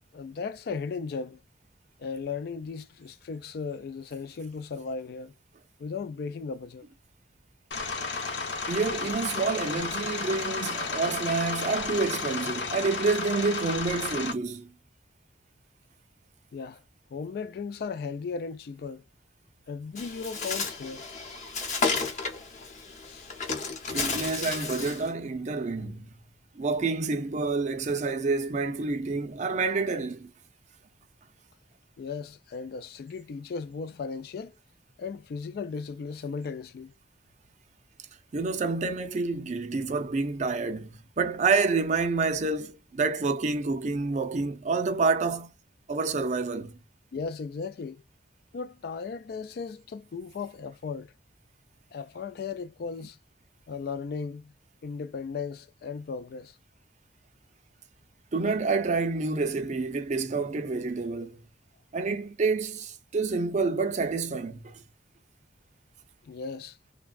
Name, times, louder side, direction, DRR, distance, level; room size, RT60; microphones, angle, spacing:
voice 1, 0.1-1.4 2.0-5.3 5.8-6.9 16.5-16.8 17.1-19.0 19.7-21.0 23.0-23.3 32.0-34.6 35.0-36.9 47.1-48.0 48.5-51.1 51.9-53.2 53.7-54.5 54.8-56.6 66.2-66.8, left 5 dB, 60° left, 0.3 m, -36 dB
sound 1, 7.7-14.3, left 4 dB, 80° left, 0.8 m, -33 dB
voice 2, 8.7-14.7 23.9-26.1 26.6-30.3 38.3-45.5 45.9-46.8 58.3-61.4 61.9-64.8, right 4 dB, 40° right, 0.5 m, -28 dB
Bird, 20.0-25.1, left 4 dB, 45° left, 0.8 m, -32 dB
3.2 x 2.2 x 2.3 m
head